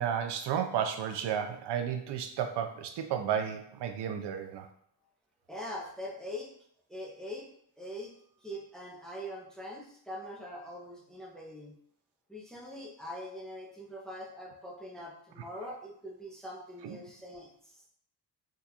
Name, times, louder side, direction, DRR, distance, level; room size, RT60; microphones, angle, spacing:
voice 1, 0.0-4.7 16.8-17.0, right 8 dB, 85° right, 6 dB, 0.5 m, -32 dB
voice 2, 5.5-6.5 6.9-7.5 7.8-8.1 8.4-11.7 12.3-17.9, equal, ahead, -3 dB, 0.5 m, -43 dB
3.8 x 2.3 x 2.8 m, 0.64 s
wide cardioid pair, 155°, 40 cm